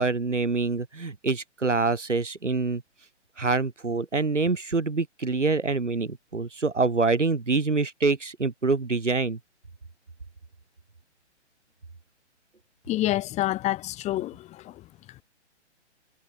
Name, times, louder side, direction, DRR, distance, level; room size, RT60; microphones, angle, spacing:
voice 1, 0.0-2.8 3.4-9.4, right 3 dB, 85° right, 7.7 m, -25 dB
voice 2, 12.9-14.8, left 15 dB, 20° left, 1.7 m, -28 dB
figure-of-eight pair, 130°, 35 cm